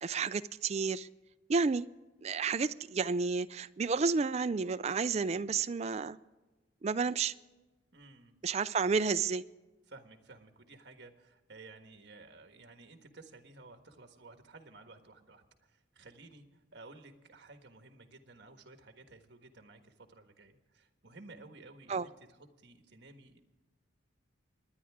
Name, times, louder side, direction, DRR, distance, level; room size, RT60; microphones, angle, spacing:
voice 1, 0.0-1.1 1.5-1.8 2.2-6.2 6.8-7.3 8.4-9.4 21.9-22.1, right 4 dB, 35° right, 0.4 m, -31 dB
voice 2, 7.9-8.4 9.9-23.4, right 3 dB, 60° right, 1.5 m, -54 dB
28.0 x 10.5 x 3.6 m
head